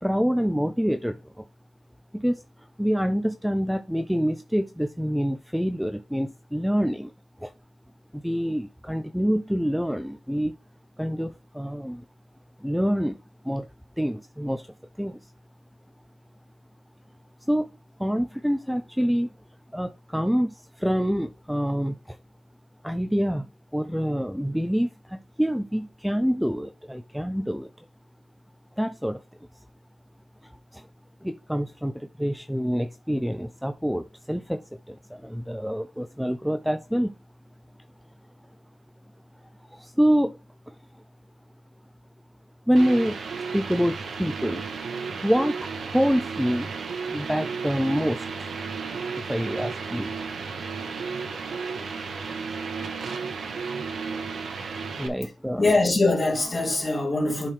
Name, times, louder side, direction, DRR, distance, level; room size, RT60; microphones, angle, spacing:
voice 1, 0.0-1.4 2.1-2.4 2.8-7.1 7.4-7.5 8.1-10.5 11.0-12.1 12.6-13.7 14.0-15.3 17.5-17.7 18.0-19.3 19.7-22.2 22.8-27.7 28.8-29.2 30.4-30.9 31.2-37.1 39.7-40.4 40.7-40.8 42.7-43.2 43.5-44.6 45.2-46.7 47.1-48.5 49.3-50.1 55.0-55.7, equal, ahead, 0.4 m, -26 dB
sound 1, 42.8-55.1, right 5 dB, 85° right, 1.2 m, -33 dB
voice 2, 55.6-57.5, left 2 dB, 30° left, 2.4 m, -23 dB
10.5 x 4.5 x 3.3 m
wide cardioid pair, 150°, 0 cm